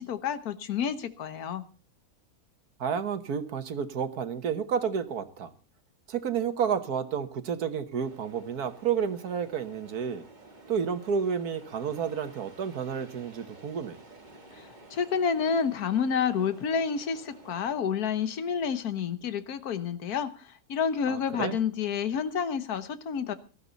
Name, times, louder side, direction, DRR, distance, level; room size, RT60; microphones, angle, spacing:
voice 1, 0.0-1.6 14.6-23.3, left 7 dB, 85° left, 11 dB, 1.6 m, -29 dB
voice 2, 2.8-5.5 6.1-10.2 10.7-14.0 21.1-21.6, right 7 dB, 85° right, 11 dB, 1.7 m, -30 dB
sound 1, 8.0-17.8, right 2 dB, 30° right, 2.3 m, -52 dB
18.5 x 13.5 x 4.0 m, 0.33 s
omnidirectional pair, 1.6 m